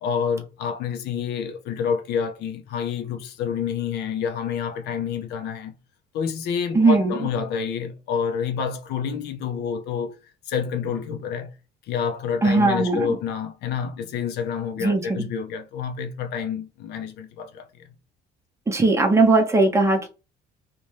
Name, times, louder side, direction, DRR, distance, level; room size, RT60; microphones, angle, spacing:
voice 1, 0.0-5.7 6.1-10.2 10.4-11.5 11.9-17.9, left 7 dB, 80° left, 0.5 m, -28 dB
voice 2, 6.7-7.1 12.4-13.1 14.8-15.3 18.7-20.1, right 3 dB, 15° right, 0.7 m, -19 dB
2.6 x 2.2 x 3.1 m
cardioid pair, 110°, 17 cm